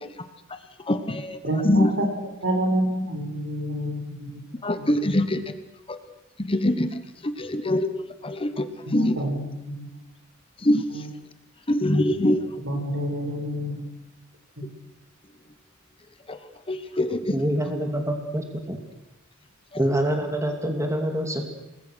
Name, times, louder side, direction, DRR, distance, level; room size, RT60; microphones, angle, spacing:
voice 1, 0.9-1.4 1.6-1.9 4.6-5.4 5.9-6.0 6.4-7.0 7.4-7.9 8.2-9.2 10.6-10.8 11.7-12.4 16.7-17.3, left 1 dB, 25° left, 9 dB, 1.3 m, -23 dB
voice 2, 1.4-4.4 4.7-5.0 8.9-9.9 10.9-11.1 12.6-13.9 14.6-14.7, right 1 dB, 70° right, 3 dB, 5.9 m, -28 dB
voice 3, 17.3-18.8 19.8-21.5, right 1 dB, 15° right, 4 dB, 2.4 m, -26 dB
28.0 x 20.5 x 6.4 m, 0.93 s
head